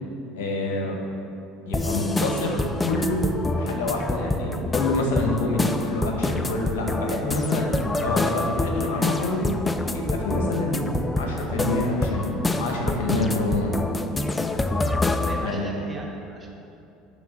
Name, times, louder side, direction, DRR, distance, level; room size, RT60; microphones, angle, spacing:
voice 1, 0.3-0.9 1.7-3.3 3.6-9.5 9.9-10.9 11.2-13.8 15.4-15.7, left 2 dB, 80° left, 0 dB, 1.4 m, -27 dB
sound 1, 1.7-15.5, left 2 dB, 15° left, 0.5 m, -26 dB
voice 2, 15.2-16.5, right 2 dB, 25° right, -1 dB, 1.4 m, -37 dB
9.9 x 3.6 x 5.8 m, 2.7 s
hypercardioid pair, 80°, 0 cm